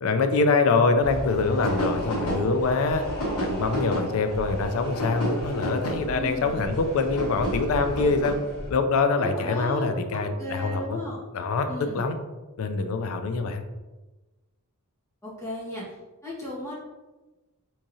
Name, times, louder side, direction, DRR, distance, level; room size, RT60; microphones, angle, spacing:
voice 1, 0.0-3.0 3.4-8.4 8.7-11.0 11.3-12.2 12.6-13.6, left 4 dB, 65° left, 7 dB, 0.4 m, -24 dB
sound 1, 1.0-8.7, equal, 80° left, 1.1 m, -31 dB
voice 2, 6.1-6.6 9.2-11.2 11.7-12.0 15.2-16.0 16.2-16.7, left 1 dB, 15° left, -10 dB, 1.4 m, -35 dB
3.6 x 3.0 x 2.7 m, 1.2 s
head